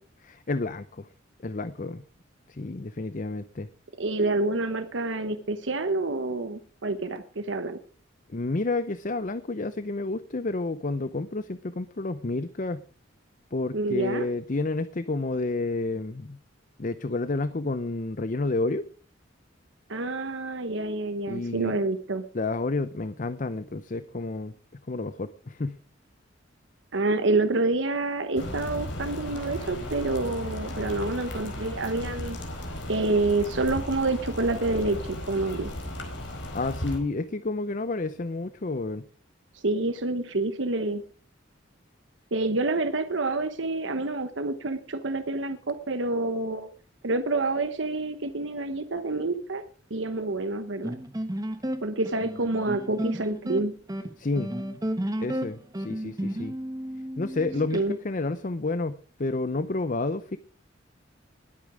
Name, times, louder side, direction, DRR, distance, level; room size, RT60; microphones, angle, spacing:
voice 1, 0.2-1.1 1.4-2.0 2.5-3.7 8.3-12.8 13.5-16.4 16.8-18.8 21.3-21.7 22.3-24.5 24.9-25.8 36.5-39.0 54.2-54.5 55.2-56.5 57.2-60.4, left 2 dB, 40° left, 13 dB, 0.7 m, -30 dB
voice 2, 4.0-7.8 13.7-14.3 19.9-22.2 26.9-32.4 32.9-35.7 39.5-41.0 42.3-46.7 47.0-49.6 49.9-50.9 51.8-53.7 57.7-57.9, right 2 dB, 70° right, 9 dB, 1.1 m, -28 dB
sound 1, 28.4-37.0, left 1 dB, 65° left, 4.5 m, -36 dB
sound 2, 50.8-57.8, equal, 20° right, 1.2 m, -32 dB
20.5 x 8.7 x 5.0 m, 0.40 s
head